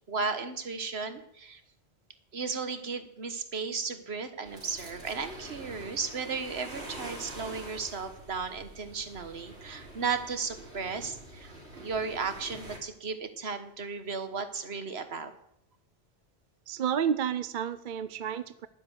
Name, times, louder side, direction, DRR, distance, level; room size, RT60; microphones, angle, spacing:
voice 1, 0.1-1.6 2.3-11.5 11.8-15.3, right 5 dB, 70° right, 9 dB, 1.6 m, -35 dB
sound 1, 4.4-12.8, right 1 dB, 90° right, 3.7 m, -46 dB
voice 2, 16.7-18.7, right 8 dB, 55° right, 13 dB, 0.7 m, -30 dB
11.5 x 9.6 x 8.0 m, 0.74 s
omnidirectional pair, 1.1 m